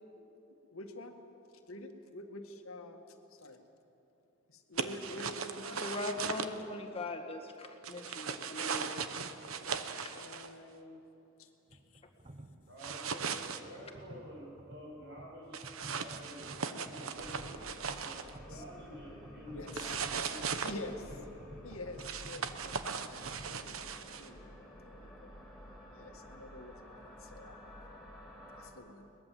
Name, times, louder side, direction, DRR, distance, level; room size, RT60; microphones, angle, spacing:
voice 1, 0.7-1.2 1.7-3.0 3.4-3.6 4.5-6.2 8.7-9.8 10.1-11.0 11.4-12.0 18.5-18.6 19.5-20.0 20.6-21.1 21.6-22.8 23.1-25.3 25.9-27.6 28.5-29.1, left 2 dB, 90° left, 4 dB, 1.9 m, -48 dB
sound 1, 4.8-6.5 7.8-10.5 12.8-13.6 15.5-18.3 19.7-20.7 22.0-24.3, right 6 dB, 80° right, 1.1 m, -38 dB
voice 2, 5.8-8.9 10.0-10.2, left 2 dB, 30° left, 3 dB, 1.7 m, -40 dB
sound 2, 11.7-23.6, right 1 dB, 30° right, 1.1 m, -53 dB
voice 3, 12.7-15.6 15.9-17.6 18.0-18.2 18.5-21.2, equal, 60° right, -2 dB, 7.4 m, -50 dB
sound 3, 17.1-28.7, equal, ahead, 4.4 m, -52 dB
22.5 x 20.0 x 7.7 m, 3.0 s
head